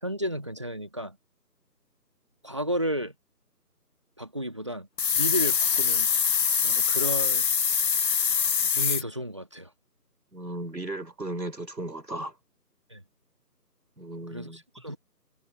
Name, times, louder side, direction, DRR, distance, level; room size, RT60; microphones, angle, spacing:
voice 1, 0.0-1.2 2.4-3.2 4.2-4.9 5.2-7.5 8.8-9.7 12.9-13.0 14.3-15.0, equal, 20° right, 1.9 m, -33 dB
sound 1, 5.0-9.0, left 7 dB, 85° left, 0.7 m, -24 dB
voice 2, 10.3-12.3 14.0-14.6, right 1 dB, 85° right, 5.0 m, -36 dB
figure-of-eight pair, 170°, 49 cm